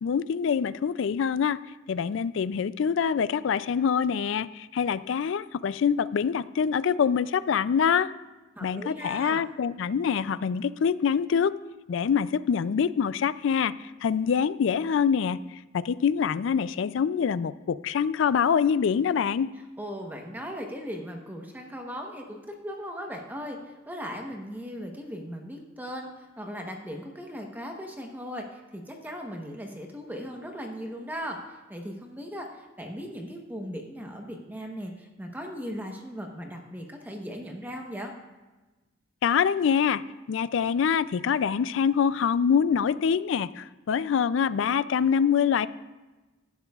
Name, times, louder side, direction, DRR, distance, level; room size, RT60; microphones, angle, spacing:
voice 1, 0.0-1.6 1.9-8.1 8.6-11.5 11.9-13.7 14.0-15.4 15.7-19.5 39.2-40.0 40.3-45.7, left 7 dB, 65° left, 16 dB, 0.3 m, -25 dB
voice 2, 8.6-9.4 19.8-38.1, equal, 10° right, 2 dB, 1.0 m, -38 dB
17.0 x 11.0 x 2.4 m, 1.2 s
head